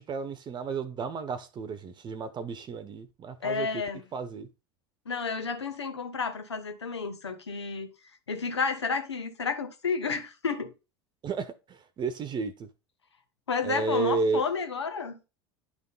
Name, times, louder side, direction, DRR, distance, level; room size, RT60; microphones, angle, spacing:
voice 1, 0.0-3.7 4.1-4.5 11.2-12.7 13.6-14.4, right 4 dB, 35° right, 1.0 m, -32 dB
voice 2, 3.4-4.0 5.0-7.9 8.3-10.7 13.5-15.2, left 5 dB, 90° left, 1.4 m, -31 dB
10.5 x 3.9 x 5.4 m
hypercardioid pair, 85°, 14 cm